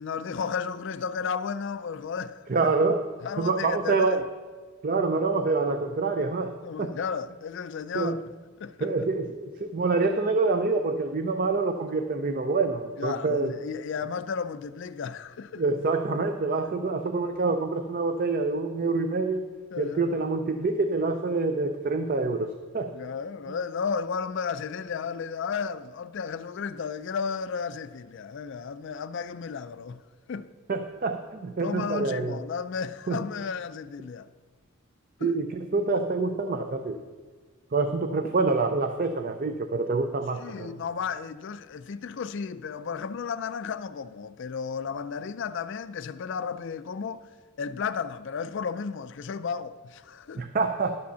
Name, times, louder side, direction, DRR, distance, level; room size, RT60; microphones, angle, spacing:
voice 1, 0.0-2.8 3.2-4.3 6.6-8.2 8.6-9.1 13.0-15.6 19.7-20.1 22.9-30.0 30.3-30.5 31.6-34.3 35.2-35.3 40.4-47.2 47.6-50.4, left 6 dB, 55° left, 0.4 m, -33 dB
voice 2, 2.5-3.1 3.4-4.2 4.8-6.9 7.9-8.2 8.8-13.5 15.6-19.5 19.8-22.9 30.7-32.4 33.1-33.2 35.2-37.0 37.7-40.7 50.4-51.0, right 3 dB, 40° right, 0.4 m, -26 dB
11.0 x 5.1 x 6.8 m
head